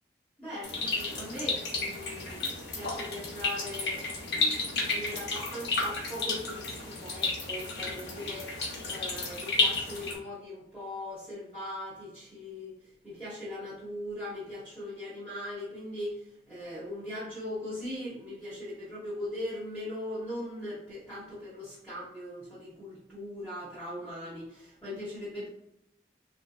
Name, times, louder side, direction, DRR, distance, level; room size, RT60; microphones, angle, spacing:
voice 1, 0.4-8.6 8.8-25.5, left 1 dB, 5° left, -12 dB, 1.0 m, -40 dB
sound 1, 0.6-10.1, left 3 dB, 75° left, 0.9 m, -32 dB
3.7 x 2.5 x 2.3 m, 0.86 s
head